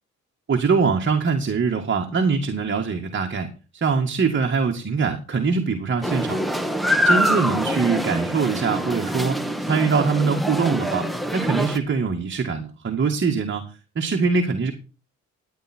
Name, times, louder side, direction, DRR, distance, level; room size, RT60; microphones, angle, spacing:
voice 1, 0.5-3.5 3.7-6.5 7.0-11.0 11.3-14.7, right 5 dB, 40° right, 3 dB, 2.1 m, -23 dB
sound 1, 6.0-11.8, equal, ahead, 1.6 m, -24 dB
12.0 x 9.8 x 4.5 m, 0.34 s
cardioid pair, 90°, 30 cm